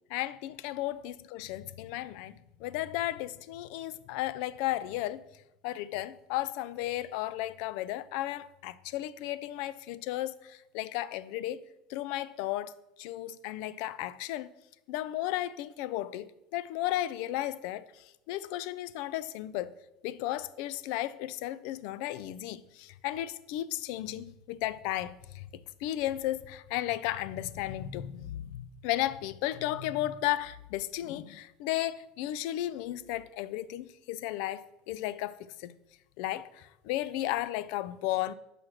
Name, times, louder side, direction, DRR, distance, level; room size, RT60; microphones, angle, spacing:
voice 1, 0.1-5.2 5.6-11.6 11.9-12.7 13.0-14.5 14.9-17.8 18.3-19.7 20.0-25.5 25.8-35.8 36.2-38.3, left 14 dB, 70° left, 0.4 m, -34 dB
6.2 x 4.9 x 5.8 m
supercardioid pair, 110°, 0 cm